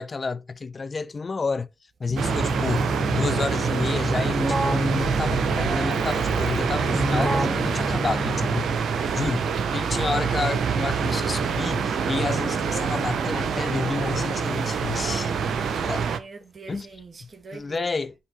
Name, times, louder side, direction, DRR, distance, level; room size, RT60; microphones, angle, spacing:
voice 1, 0.0-1.7 2.0-8.8 9.1-15.3 15.8-16.1 16.7-16.9 17.2-18.1, left 4 dB, 40° left, 0.7 m, -30 dB
Keyboard (musical), 2.1-8.9, equal, 5° right, 1.8 m, -29 dB
sound 1, 2.2-16.2, right 6 dB, 65° right, 1.0 m, -26 dB
voice 2, 15.5-18.1, right 4 dB, 45° right, 1.8 m, -44 dB
10.0 x 3.7 x 4.9 m
hypercardioid pair, 40°, 0 cm